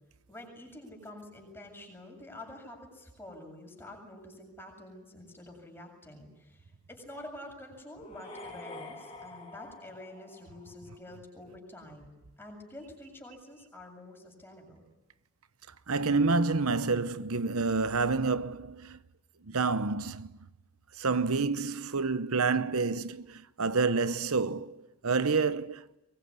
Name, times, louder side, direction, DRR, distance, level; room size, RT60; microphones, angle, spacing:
voice 1, 0.3-12.1 12.4-14.8, left 1 dB, 10° left, 7.6 m, -48 dB
sound 1, 8.0-11.0, left 2 dB, 30° left, 6.7 m, -47 dB
voice 2, 15.9-19.0 19.4-20.3 21.0-25.9, right 4 dB, 75° right, 1.0 m, -28 dB
24.0 x 22.5 x 9.9 m
head